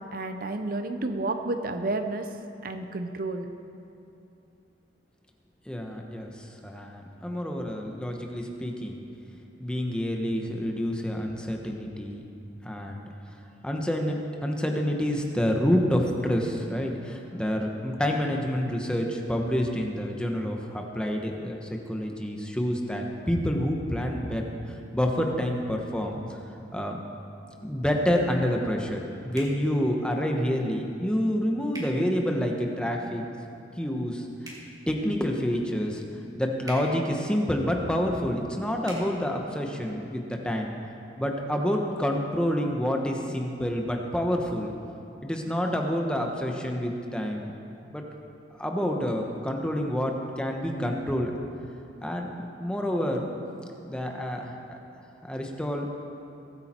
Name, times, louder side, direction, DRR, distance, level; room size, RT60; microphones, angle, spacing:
voice 1, 0.1-2.3 2.6-3.5, right 2 dB, 50° right, 7 dB, 0.7 m, -30 dB
voice 2, 5.7-9.0 9.6-12.2 12.6-13.0 13.6-24.5 24.9-26.4 26.7-27.0 27.6-33.3 33.8-34.3 34.9-36.0 36.3-40.7 41.2-44.7 45.2-47.5 47.9-48.0 48.6-51.4 52.0-53.2 53.8-54.8 55.2-55.9, equal, 5° left, 1 dB, 1.1 m, -28 dB
sound 1, 29.3-29.6 31.7-31.9 34.4-34.6 36.6-36.8 38.8-39.0, right 1 dB, 20° right, 2.7 m, -41 dB
21.5 x 8.7 x 4.4 m, 2.8 s
head